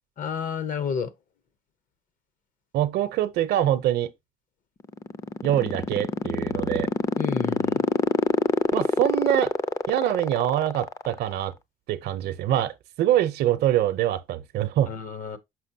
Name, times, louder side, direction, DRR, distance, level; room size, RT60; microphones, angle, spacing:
voice 1, 0.2-1.1 7.2-7.8 14.9-15.4, left 7 dB, 50° left, 0.9 m, -30 dB
voice 2, 2.7-4.1 5.4-6.9 8.7-9.5 9.9-11.5 11.9-14.9, right 12 dB, 70° right, 0.7 m, -24 dB
sound 1, 4.8-11.4, left 3 dB, 20° left, 0.5 m, -24 dB
6.1 x 5.7 x 2.7 m
cardioid pair, 110°, 17 cm